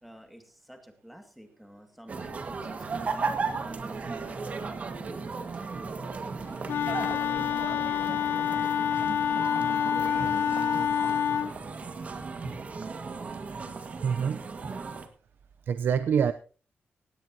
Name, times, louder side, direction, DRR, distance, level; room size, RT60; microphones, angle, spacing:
voice 1, 0.0-6.6, equal, ahead, 5 dB, 2.2 m, -50 dB
sound 1, 2.1-15.1, right 4 dB, 40° right, 1.7 m, -35 dB
Wind instrument woodwind instrument, 6.7-11.5, left 9 dB, 75° left, 0.8 m, -27 dB
voice 2, 14.0-14.4 15.7-16.3, right 7 dB, 65° right, 11 dB, 0.6 m, -25 dB
17.5 x 17.0 x 2.9 m, 0.38 s
wide cardioid pair, 160°, 4 cm